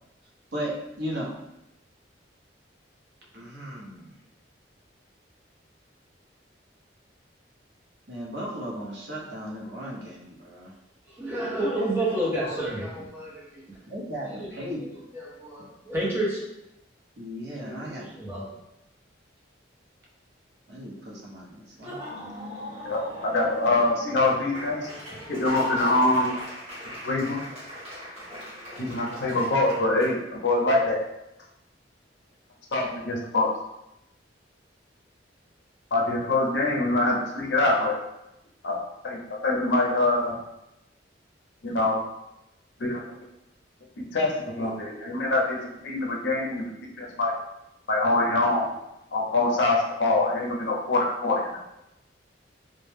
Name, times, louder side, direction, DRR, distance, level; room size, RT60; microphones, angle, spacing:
voice 1, 0.5-1.3 3.3-4.1 8.1-10.7 13.9-14.8 17.2-18.4 20.7-22.0, equal, 60° right, -4 dB, 0.6 m, -36 dB
voice 2, 11.1-13.8 14.3-16.4 17.6-18.5, right 1 dB, 10° right, -5 dB, 0.5 m, -30 dB
Laughter / Applause, 21.7-30.1, equal, 35° right, 0.9 m, -40 dB
voice 3, 22.8-24.9 25.3-26.3 27.0-27.4 28.8-31.0 32.7-33.5 35.9-38.0 38.6-38.8 39.0-40.3 41.6-42.0 42.8-43.1 44.0-46.7 47.0-47.3 47.9-48.7 49.1-51.6, left 2 dB, 65° left, -1 dB, 0.5 m, -24 dB
2.1 x 2.0 x 3.2 m, 0.88 s
head